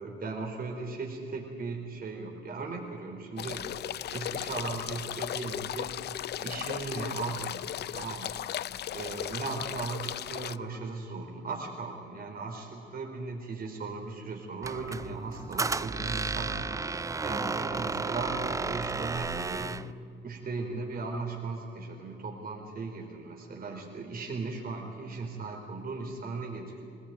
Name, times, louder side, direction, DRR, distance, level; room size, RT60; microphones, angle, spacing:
voice 1, 0.0-3.8 4.1-5.9 6.4-7.6 7.9-8.4 8.9-16.7 17.2-19.8 20.2-26.8, right 4 dB, 50° right, 0 dB, 4.0 m, -37 dB
sound 1, 3.4-10.6, left 11 dB, 55° left, 0.5 m, -36 dB
Squeak, 14.6-19.9, right 3 dB, 15° right, 0.4 m, -33 dB
21.0 x 18.0 x 9.1 m, 2.4 s
cardioid pair, 90°, 20 cm